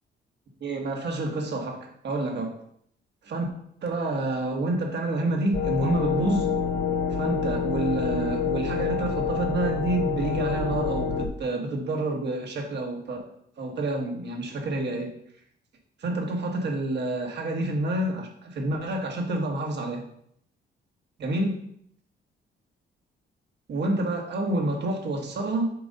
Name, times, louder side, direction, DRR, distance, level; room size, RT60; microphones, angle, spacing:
voice 1, 0.6-2.6 3.2-3.5 3.8-6.5 7.1-13.3 13.6-15.1 16.0-20.0 21.2-21.6 23.7-25.7, right 2 dB, 60° right, 2 dB, 1.5 m, -28 dB
sound 1, 5.5-11.3, left 6 dB, 45° left, 0.7 m, -27 dB
7.5 x 2.6 x 5.3 m, 0.69 s
cardioid pair, 90°, 20 cm